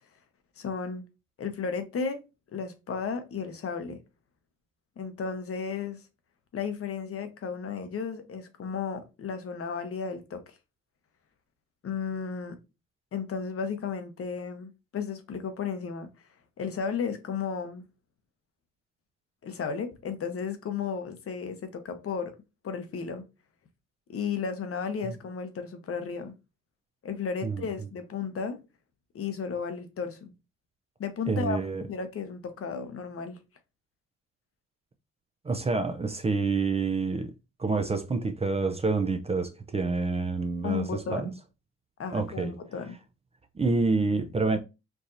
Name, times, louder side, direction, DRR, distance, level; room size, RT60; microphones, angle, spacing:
voice 1, 0.6-1.0 1.4-2.2 2.5-4.0 5.0-6.0 6.5-10.4 11.8-12.6 13.1-16.1 16.6-17.8 19.4-22.4 22.6-23.2 24.1-26.3 27.0-28.6 29.1-30.3 31.0-33.4 40.6-41.3 42.0-43.0, left 6 dB, 50° left, 0.8 m, -34 dB
voice 2, 31.3-31.8 35.4-37.3 37.6-41.3 42.1-42.5 43.5-44.6, right 3 dB, 20° right, 0.4 m, -28 dB
4.6 x 2.7 x 2.5 m
cardioid pair, 90°, 30 cm